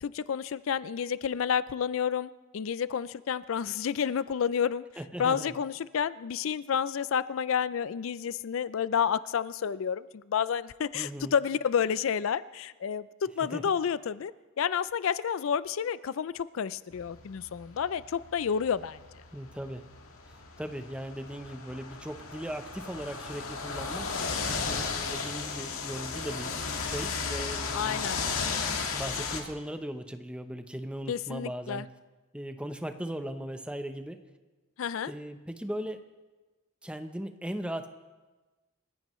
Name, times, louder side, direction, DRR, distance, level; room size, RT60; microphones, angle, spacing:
voice 1, 0.0-4.8 5.2-14.3 14.6-19.0 27.7-28.2 31.1-31.9 34.8-35.1, left 7 dB, 70° left, 17 dB, 0.4 m, -30 dB
voice 2, 5.0-5.5 10.9-11.3 13.5-13.6 19.3-19.8 20.6-24.1 24.6-26.5 26.8-28.2 28.9-31.9 32.3-34.2 35.1-36.0 36.8-37.9, equal, 5° right, 8 dB, 0.7 m, -38 dB
sound 1, 16.9-29.4, left 5 dB, 90° left, 1.8 m, -35 dB
28.5 x 15.5 x 3.1 m, 1.2 s
head